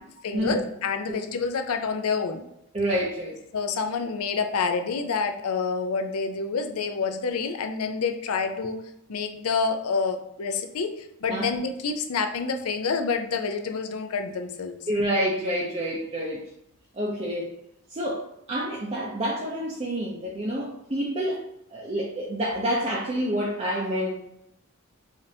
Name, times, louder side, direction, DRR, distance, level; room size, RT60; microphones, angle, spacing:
voice 1, 0.2-2.4 3.5-8.8 9.1-10.9 11.2-14.8, left 5 dB, 80° left, 5 dB, 0.5 m, -28 dB
voice 2, 2.7-3.4 11.3-11.4 14.9-16.5 17.0-17.5 17.9-18.2 18.5-21.4 21.7-24.3, equal, 30° right, -5 dB, 0.5 m, -28 dB
5.0 x 2.6 x 2.7 m, 0.79 s
head